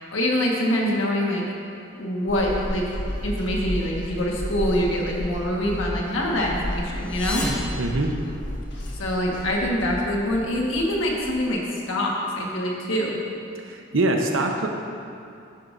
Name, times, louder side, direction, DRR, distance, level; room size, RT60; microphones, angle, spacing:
voice 1, 0.1-1.4 2.0-2.8 3.2-7.5 9.0-11.6 11.9-13.2, equal, 90° left, -2 dB, 1.5 m, -24 dB
sound 1, 2.3-11.5, left 1 dB, 70° left, 1.4 m, -33 dB
sound 2, 6.9-8.8, left 1 dB, 5° left, 0.9 m, -32 dB
voice 2, 7.8-8.1 13.6-14.7, right 2 dB, 85° right, 3 dB, 0.9 m, -23 dB
10.5 x 10.0 x 2.6 m, 2.6 s
head